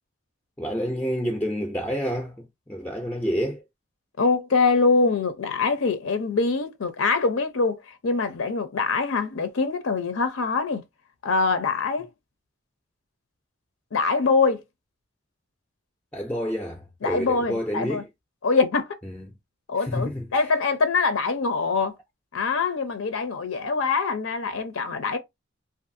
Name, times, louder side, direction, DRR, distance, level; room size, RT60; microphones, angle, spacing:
voice 1, 0.6-3.6 16.1-18.0 19.0-19.3 19.8-20.3, equal, 5° left, 0.3 m, -29 dB
voice 2, 4.2-10.8 11.2-12.1 13.9-14.6 17.0-18.0 18.4-18.9 19.7-21.9 22.3-25.2, left 4 dB, 85° left, 0.6 m, -24 dB
2.6 x 2.6 x 2.5 m
head